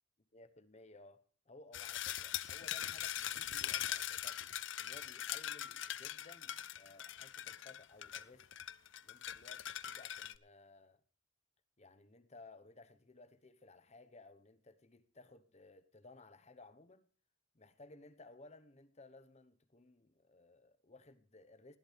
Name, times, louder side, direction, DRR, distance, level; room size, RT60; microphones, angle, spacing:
voice 1, 0.3-4.5 4.8-8.5 9.0-11.0 11.8-17.1 17.5-21.8, left 2 dB, 35° left, 1.1 m, -59 dB
sound 1, 1.7-10.4, left 11 dB, 65° left, 0.6 m, -42 dB
19.5 x 11.5 x 3.4 m
head